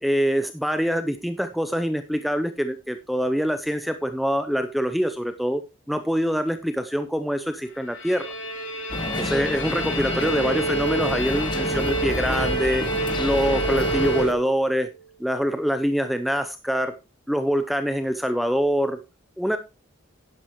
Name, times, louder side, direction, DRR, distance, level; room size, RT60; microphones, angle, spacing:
voice 1, 0.0-5.6 5.9-8.3 9.2-12.8 13.2-14.9 15.2-16.9 17.3-19.0 19.4-19.6, equal, ahead, 9 dB, 0.5 m, -24 dB
Bowed string instrument, 7.7-14.7, right 2 dB, 65° left, 4.2 m, -29 dB
sound 1, 8.9-14.3, left 1 dB, 20° left, 0.9 m, -29 dB
11.5 x 10.0 x 3.0 m, 0.27 s
head